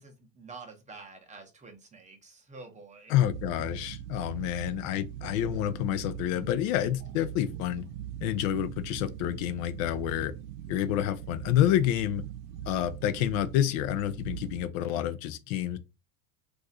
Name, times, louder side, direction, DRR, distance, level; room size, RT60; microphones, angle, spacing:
voice 1, 0.0-3.1, right 3 dB, 15° right, 0.7 m, -48 dB
voice 2, 3.1-7.8 8.2-10.3 10.7-12.2 12.7-15.8, left 12 dB, 70° left, 0.5 m, -28 dB
sound 1, 3.2-14.7, right 11 dB, 70° right, 0.7 m, -41 dB
2.5 x 2.3 x 4.0 m
supercardioid pair, 115°, 41 cm